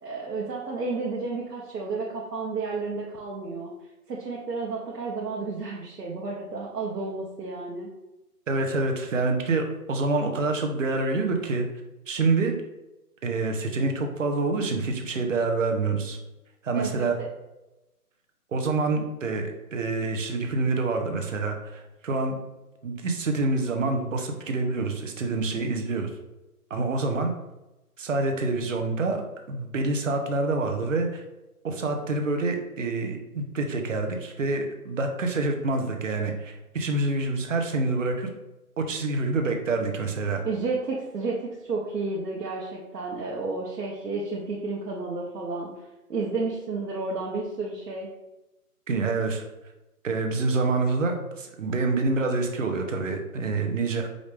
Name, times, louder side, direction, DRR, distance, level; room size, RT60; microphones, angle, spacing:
voice 1, 0.0-3.7 4.1-7.9 16.7-17.3 40.4-45.7 46.1-48.1, right 3 dB, 85° right, -4 dB, 1.1 m, -31 dB
voice 2, 8.5-11.7 12.1-12.5 13.2-16.2 16.6-17.1 18.5-22.3 22.8-26.1 26.7-27.3 28.0-31.2 31.6-38.3 38.8-40.4 48.9-49.4 50.0-54.1, right 3 dB, 55° right, 4 dB, 0.8 m, -27 dB
5.0 x 2.6 x 3.4 m, 1.0 s
hypercardioid pair, 165°, 47 cm